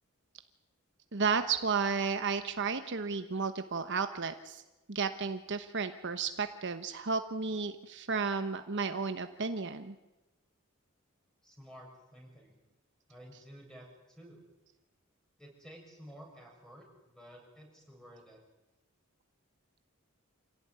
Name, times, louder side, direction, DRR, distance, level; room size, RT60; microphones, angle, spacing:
voice 1, 1.1-4.6 4.9-9.9, right 5 dB, 55° right, 8 dB, 1.1 m, -33 dB
voice 2, 11.4-12.5 13.1-14.4 15.4-18.4, equal, 5° left, 0 dB, 7.2 m, -53 dB
26.5 x 17.0 x 9.7 m, 1.0 s
head